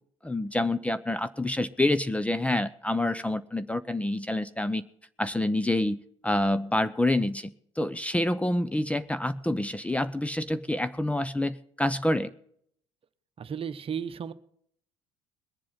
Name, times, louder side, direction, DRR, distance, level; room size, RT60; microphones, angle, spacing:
voice 1, 0.2-4.8 5.2-12.3, left 1 dB, 10° left, 14 dB, 0.7 m, -27 dB
voice 2, 13.4-14.3, right 7 dB, 40° right, 12 dB, 1.0 m, -34 dB
21.0 x 7.6 x 5.8 m, 0.66 s
hypercardioid pair, 65°, 15 cm